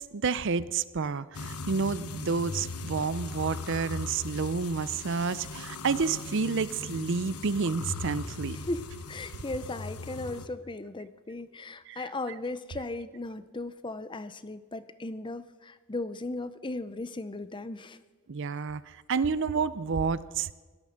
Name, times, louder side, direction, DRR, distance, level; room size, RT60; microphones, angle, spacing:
voice 1, 0.0-8.6 11.9-12.0 18.3-20.5, right 5 dB, 55° right, 16 dB, 0.6 m, -30 dB
sound 1, 1.3-10.5, left 3 dB, 85° left, 1.0 m, -39 dB
voice 2, 8.5-18.0, left 2 dB, 20° left, 13 dB, 0.6 m, -37 dB
17.0 x 13.0 x 6.5 m, 1.3 s
head